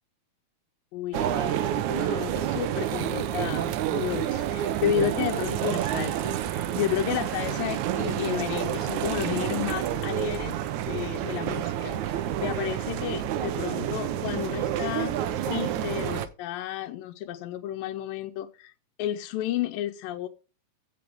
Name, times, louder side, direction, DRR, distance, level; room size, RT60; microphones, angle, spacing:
voice 1, 0.9-18.7 19.0-20.3, left 11 dB, 85° left, 2.4 m, -32 dB
sound 1, 1.1-16.3, right 11 dB, 70° right, 1.9 m, -29 dB
15.5 x 6.0 x 3.5 m
omnidirectional pair, 4.0 m